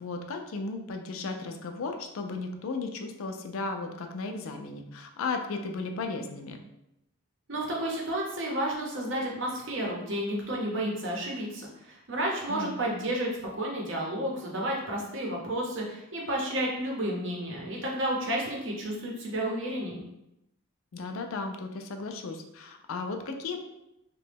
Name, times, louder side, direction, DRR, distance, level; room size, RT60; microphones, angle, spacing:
voice 1, 0.0-6.6 12.5-12.7 20.9-23.6, left 3 dB, 70° left, 5 dB, 0.4 m, -35 dB
voice 2, 7.5-20.0, right 1 dB, 60° right, -2 dB, 0.7 m, -31 dB
2.9 x 2.2 x 3.3 m, 0.86 s
head